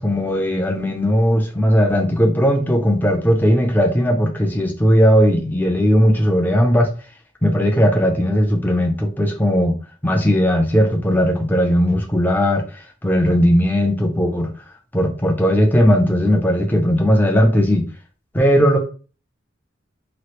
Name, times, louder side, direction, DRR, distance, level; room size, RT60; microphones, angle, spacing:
voice 1, 0.0-6.9 7.4-9.8 10.0-12.7 13.0-14.5 14.9-17.8 18.3-18.8, equal, 10° left, 0.5 m, -17 dB
3.0 x 2.4 x 3.0 m
head